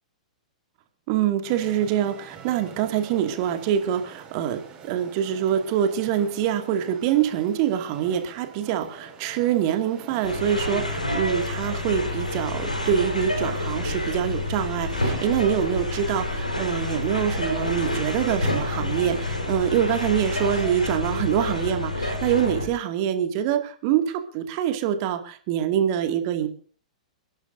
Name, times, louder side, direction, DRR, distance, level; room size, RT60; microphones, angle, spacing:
voice 1, 1.1-26.5, right 9 dB, 40° right, 7 dB, 2.2 m, -25 dB
sound 1, 1.4-21.0, right 6 dB, 20° right, 5.6 m, -44 dB
sound 2, 10.2-22.7, left 2 dB, 85° left, 4.3 m, -28 dB
29.0 x 11.5 x 2.7 m, 0.41 s
figure-of-eight pair, 105°, 4 cm